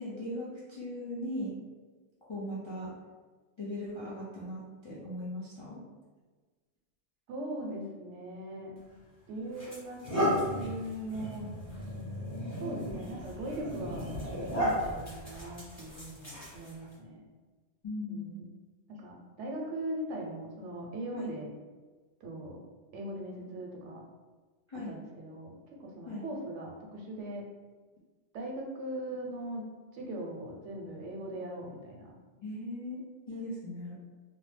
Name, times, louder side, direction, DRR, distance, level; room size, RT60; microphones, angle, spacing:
voice 1, 0.0-1.5 2.3-2.9 3.6-5.8 17.8-18.4 21.1-21.4 24.7-25.0 26.1-26.3 32.4-33.0 33.3-33.9, left 1 dB, 45° left, -8 dB, 0.3 m, -38 dB
voice 2, 7.3-8.7 9.3-11.5 12.6-14.1 14.6-17.2 18.1-18.5 18.9-21.5 22.2-22.6 22.9-24.0 24.9-25.5 25.8-27.4 28.3-29.7 29.9-32.1 33.3-33.4, right 1 dB, 85° right, 0 dB, 0.9 m, -40 dB
sound 1, 8.8-8.9 9.5-16.9, equal, 15° left, 0.9 m, -34 dB
2.7 x 2.0 x 3.2 m, 1.3 s
omnidirectional pair, 1.2 m